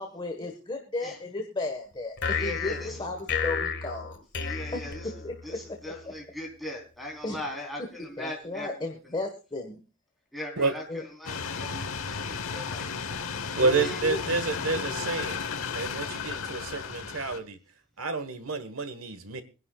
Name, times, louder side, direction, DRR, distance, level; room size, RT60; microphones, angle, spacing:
voice 1, 0.0-4.2 4.7-5.8 7.2-7.4 8.0-9.8 10.9-11.0 13.6-14.2, left 2 dB, 25° left, 3 dB, 1.5 m, -35 dB
sound 1, 2.2-5.6, left 6 dB, 55° left, 1.9 m, -32 dB
voice 2, 2.3-3.0 4.4-9.1 10.3-10.8 11.2-13.1 13.4-14.0, left 1 dB, ahead, -1 dB, 3.9 m, -40 dB
sound 2, 11.3-17.4, left 5 dB, 75° left, 1.1 m, -34 dB
voice 3, 13.5-15.4 15.7-17.6 18.0-19.4, right 3 dB, 75° right, 11 dB, 1.5 m, -29 dB
24.5 x 11.0 x 2.4 m, 0.31 s
head